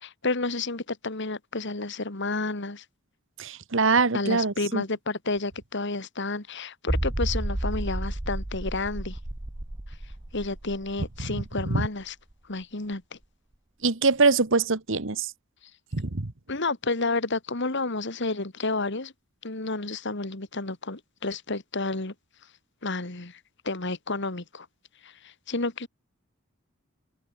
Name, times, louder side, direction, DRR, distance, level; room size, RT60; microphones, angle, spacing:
voice 1, 0.0-2.8 4.1-9.2 10.3-12.1 12.5-13.2 16.5-19.1 19.4-22.1 22.8-23.4 23.6-24.7 25.0-25.9, left 3 dB, 60° left, 2.4 m, -31 dB
voice 2, 3.4-4.8 11.2-11.3 11.6-11.8 13.8-15.3 15.9-16.3, right 4 dB, 70° right, 1.4 m, -23 dB
sound 1, 6.9-12.3 12.6-12.7 13.2-13.3, right 1 dB, 20° right, 0.9 m, -32 dB
head